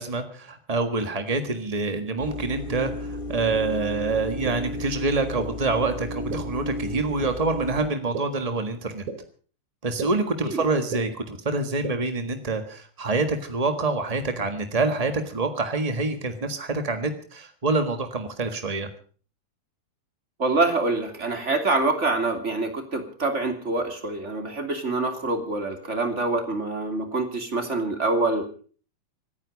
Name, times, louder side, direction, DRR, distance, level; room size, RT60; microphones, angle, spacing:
voice 1, 0.0-9.0 9.8-18.9, right 3 dB, 45° right, 7 dB, 0.4 m, -26 dB
sound 1, 2.2-7.9, left 1 dB, 85° left, 0.4 m, -34 dB
sound 2, 3.5-3.6 4.4-4.5 5.4-5.5 6.3-6.4 7.2-7.3 8.1-8.2 9.1-9.2 10.0-10.1 10.9-11.0 11.8-11.9, right 5 dB, 65° right, 3.7 m, -31 dB
voice 2, 20.4-28.4, right 2 dB, 25° right, 5 dB, 2.7 m, -25 dB
26.5 x 9.8 x 5.3 m, 0.42 s
omnidirectional pair, 3.6 m